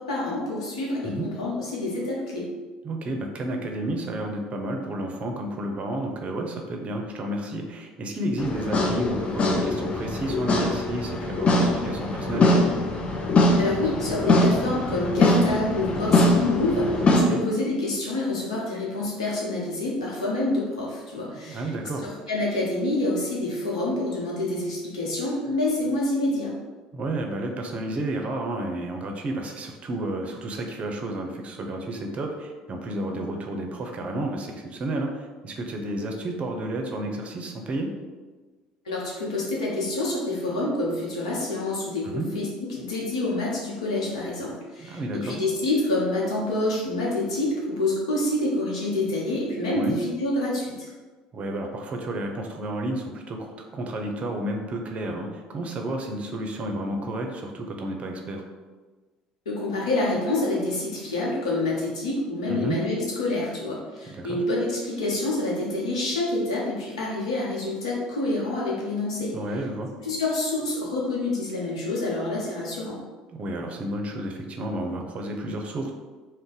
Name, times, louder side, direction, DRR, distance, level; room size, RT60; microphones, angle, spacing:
voice 1, 0.0-2.5 13.6-21.7 22.0-26.5 38.8-50.9 59.5-69.3 70.0-73.0, left 2 dB, 90° left, -4 dB, 0.8 m, -27 dB
voice 2, 2.8-12.7 17.1-17.5 21.4-22.1 26.9-37.9 42.1-42.3 44.8-45.4 49.7-50.0 51.3-58.4 62.5-62.8 64.2-64.4 69.3-69.9 73.3-75.9, right 1 dB, 40° right, 3 dB, 0.6 m, -31 dB
sound 1, 8.4-17.2, left 2 dB, 35° left, 0.5 m, -22 dB
2.5 x 2.1 x 3.9 m, 1.3 s
hypercardioid pair, 65°, 3 cm